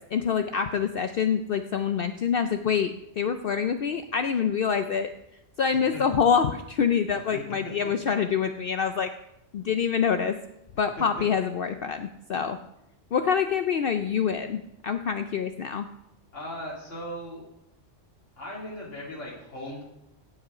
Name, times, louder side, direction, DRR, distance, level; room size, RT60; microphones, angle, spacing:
voice 1, 0.0-5.1 5.6-9.1 9.5-10.4 10.8-12.6 13.1-15.9, left 7 dB, 60° left, 8 dB, 0.7 m, -26 dB
voice 2, 5.7-6.0 7.3-7.4 16.3-17.4 18.4-19.8, left 1 dB, 80° left, -4 dB, 3.1 m, -38 dB
16.5 x 6.3 x 4.9 m, 0.85 s
omnidirectional pair, 1.2 m